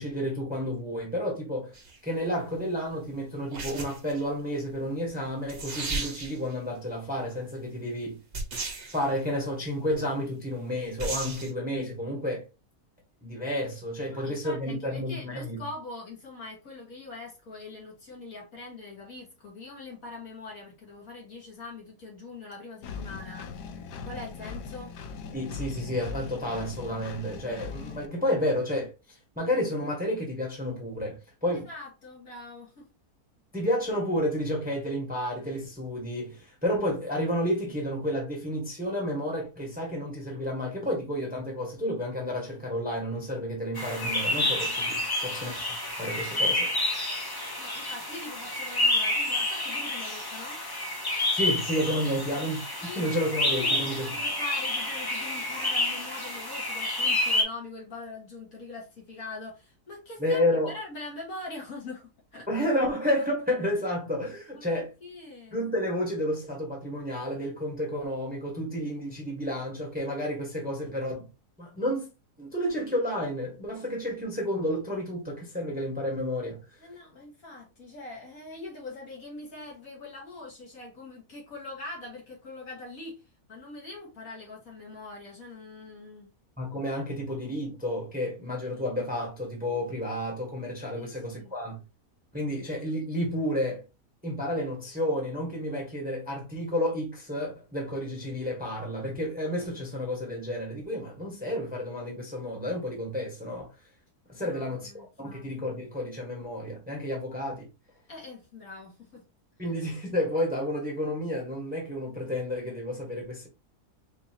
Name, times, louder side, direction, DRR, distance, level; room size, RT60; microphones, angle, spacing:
voice 1, 0.0-1.7 2.0-8.2 8.9-12.4 13.2-15.6 25.3-28.9 29.4-31.7 33.5-45.5 46.0-47.0 51.3-52.6 52.9-54.1 60.2-60.7 62.5-64.9 65.5-71.3 71.6-72.1 72.4-76.6 86.6-91.8 92.3-93.8 94.2-103.7 104.3-107.6 109.6-113.5, equal, 5° right, 1.1 m, -31 dB
sound 1, 1.7-2.0 3.5-4.2 5.2-5.3 5.5-6.5 8.3-9.0 11.0-11.5, right 3 dB, 45° right, 1.1 m, -34 dB
voice 2, 14.1-23.5 24.0-24.9 31.5-32.9 47.6-50.6 52.0-52.5 52.8-62.5 64.6-65.6 76.8-83.2 83.5-86.3 91.0-91.5 104.4-105.5 108.1-109.2, left 2 dB, 60° left, 2.0 m, -43 dB
Engine, 22.8-28.1, left 5 dB, 90° left, 1.2 m, -40 dB
sound 2, 43.8-57.4, left 2 dB, 25° left, 0.5 m, -29 dB
4.6 x 2.7 x 2.8 m
omnidirectional pair, 1.7 m